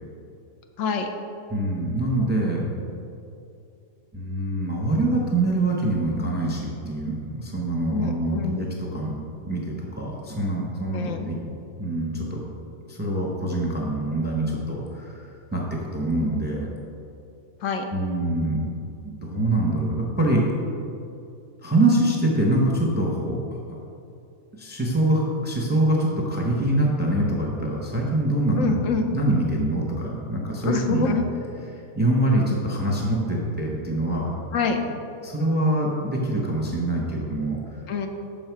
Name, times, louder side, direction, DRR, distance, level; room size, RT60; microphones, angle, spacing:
voice 1, 0.8-1.1 7.9-8.6 10.9-11.3 17.6-17.8 28.6-29.1 30.6-31.2 34.5-34.8 37.9-38.1, left 5 dB, 70° left, 5 dB, 0.9 m, -26 dB
voice 2, 1.5-2.7 4.1-9.1 9.4-11.4 11.8-12.4 12.9-16.7 17.9-18.6 19.0-20.4 21.6-23.4 24.5-28.8 29.1-31.1 32.0-34.3 35.2-37.8, right 1 dB, 10° right, -2 dB, 0.6 m, -24 dB
6.4 x 5.5 x 4.6 m, 2.7 s
omnidirectional pair, 1.5 m